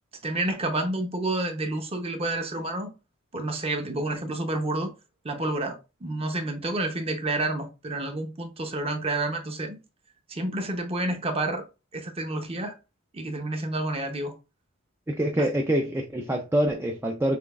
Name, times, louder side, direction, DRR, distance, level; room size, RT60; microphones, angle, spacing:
voice 1, 0.2-2.9 3.3-4.9 5.2-9.8 10.3-11.7 11.9-12.8 13.1-14.4, right 2 dB, 25° right, 0.7 m, -29 dB
voice 2, 15.1-17.4, right 1 dB, 10° right, 0.3 m, -25 dB
6.0 x 3.1 x 2.3 m
head